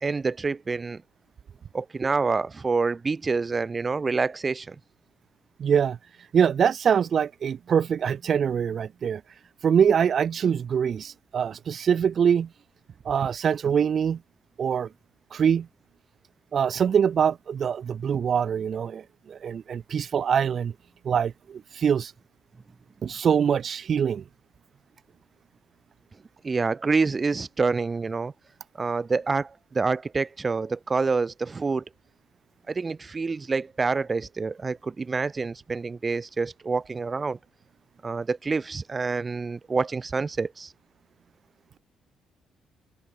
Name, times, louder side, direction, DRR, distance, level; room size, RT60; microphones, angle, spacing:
voice 1, 0.0-1.0 1.7-4.8 26.4-28.3 28.8-31.8 32.7-37.4 38.0-40.7, right 4 dB, 30° right, 2.7 m, -27 dB
voice 2, 5.6-6.0 6.3-9.2 9.6-12.5 13.1-14.2 14.6-14.9 15.3-15.7 16.5-19.0 19.3-20.7 21.1-22.1 23.0-24.2, right 7 dB, 55° right, 1.8 m, -24 dB
cardioid pair, 90°, 0 cm